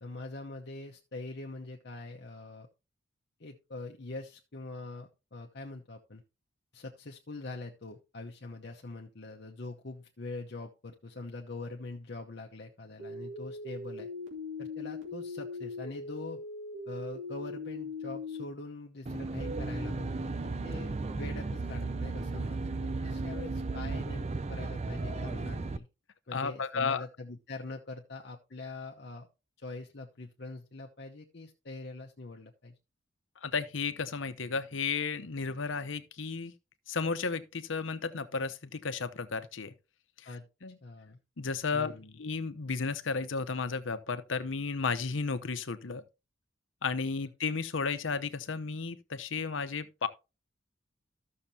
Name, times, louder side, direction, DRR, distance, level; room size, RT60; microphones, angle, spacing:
voice 1, 0.0-2.7 3.4-6.2 6.7-14.1 14.6-16.4 16.9-25.9 26.3-29.3 29.6-32.8 40.2-40.5 40.8-41.2 41.7-42.1 47.2-47.3, left 2 dB, 60° left, 0.9 m, -43 dB
sound 1, 13.0-18.4 19.1-24.0 25.0-25.3, left 1 dB, 90° right, 2.6 m, -41 dB
Aircraft, 19.1-25.8, right 3 dB, 35° right, 0.4 m, -35 dB
voice 2, 26.3-27.0 33.4-36.5 36.9-39.7 40.6-40.8 41.4-41.9 42.2-46.0 46.8-50.1, left 4 dB, 85° left, 0.8 m, -33 dB
14.0 x 6.5 x 2.8 m
head